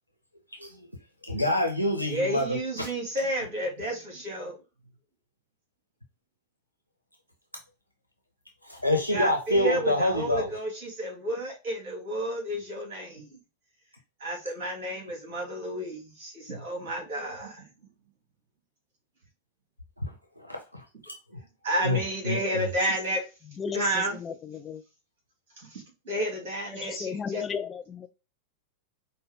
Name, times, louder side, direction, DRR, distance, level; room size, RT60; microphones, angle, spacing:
voice 1, 1.2-2.9 8.6-10.5 20.4-21.1 21.8-22.7, left 1 dB, 90° right, 0.7 m, -27 dB
voice 2, 2.1-4.6 9.1-13.4 14.2-17.6 21.6-23.2 23.7-24.2 25.6-27.4, right 1 dB, 50° right, 2.3 m, -31 dB
voice 3, 23.6-24.8 26.7-28.1, left 6 dB, 20° left, 0.3 m, -35 dB
5.1 x 2.2 x 3.6 m
figure-of-eight pair, 90°, 0 cm